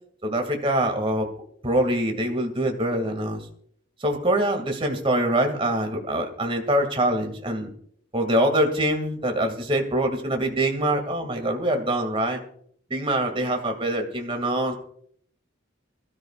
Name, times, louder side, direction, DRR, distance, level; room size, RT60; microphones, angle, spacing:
voice 1, 0.2-1.3 1.6-3.4 4.0-7.7 8.1-12.4 12.9-14.7, right 1 dB, 25° right, 4 dB, 2.3 m, -24 dB
24.5 x 13.5 x 2.5 m, 0.62 s
head